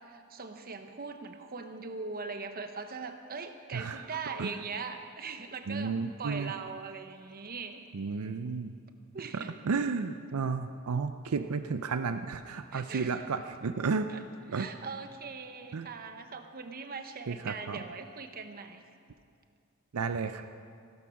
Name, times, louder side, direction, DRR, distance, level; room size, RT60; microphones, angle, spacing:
voice 1, 0.1-7.8 9.1-9.5 12.7-13.3 14.1-14.2 14.5-18.8, right 4 dB, 45° right, 7 dB, 1.0 m, -41 dB
voice 2, 5.7-6.5 7.9-8.7 9.3-14.1 14.5-14.7 15.7-15.9 17.3-17.8 19.9-20.4, right 5 dB, 80° right, 9 dB, 0.5 m, -32 dB
16.0 x 12.5 x 5.8 m, 2.4 s
head